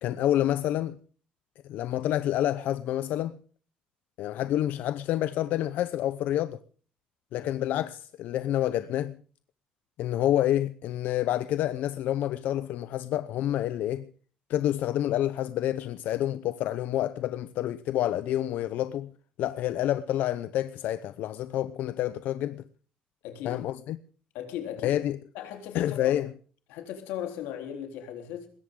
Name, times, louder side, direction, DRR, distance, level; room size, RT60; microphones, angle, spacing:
voice 1, 0.0-1.0 1.7-3.4 4.2-6.6 7.3-9.2 10.0-14.1 14.5-19.1 19.4-22.6 23.4-24.0 24.8-25.2 25.7-26.3, left 12 dB, 60° left, 0.7 m, -28 dB
voice 2, 7.3-7.7 23.2-23.6 24.3-25.0 25.3-26.2 26.7-28.5, left 10 dB, 90° left, 3.7 m, -38 dB
20.5 x 17.0 x 3.8 m
cardioid pair, 150°, 3 cm